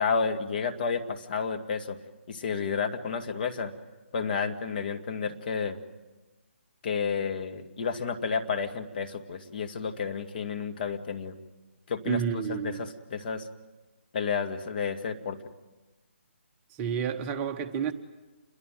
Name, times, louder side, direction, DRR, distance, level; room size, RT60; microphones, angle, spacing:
voice 1, 0.0-2.0 2.3-3.7 4.1-5.8 6.8-11.4 11.9-13.5 14.1-15.4, left 5 dB, 45° left, 2.2 m, -31 dB
voice 2, 12.1-12.9 16.8-17.9, right 7 dB, 20° right, 1.1 m, -30 dB
28.5 x 22.5 x 9.3 m
figure-of-eight pair, 150°, 7 cm